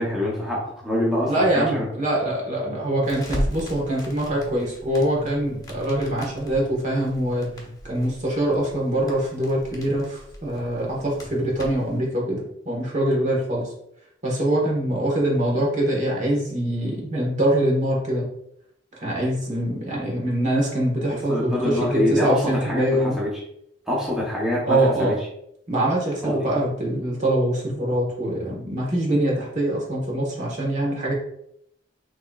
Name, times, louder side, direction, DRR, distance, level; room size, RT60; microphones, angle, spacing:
voice 1, 0.0-1.9 21.1-23.3 23.9-25.1 26.2-26.3, left 1 dB, 5° right, -6 dB, 0.9 m, -25 dB
voice 2, 1.3-13.7 14.2-18.3 19.0-23.2 24.6-25.2 25.7-31.1, right 1 dB, 45° right, -3 dB, 1.5 m, -24 dB
Crackle, 3.0-12.0, equal, 20° left, 1.0 m, -37 dB
6.5 x 3.1 x 2.4 m, 0.74 s
head